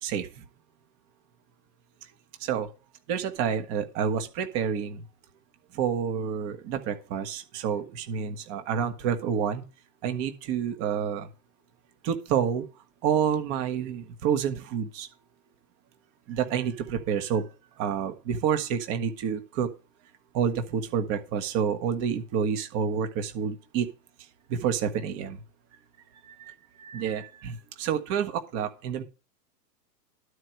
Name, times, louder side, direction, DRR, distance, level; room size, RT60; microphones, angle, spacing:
voice 1, 0.0-0.4 2.4-2.7 3.1-5.0 5.7-9.6 10.0-11.3 12.0-12.6 13.0-15.1 16.3-17.5 17.8-19.7 20.3-23.9 24.5-25.4 26.8-29.0, right 7 dB, 30° right, 8 dB, 1.4 m, -28 dB
12.0 x 4.7 x 6.4 m, 0.33 s
hypercardioid pair, 140°, 49 cm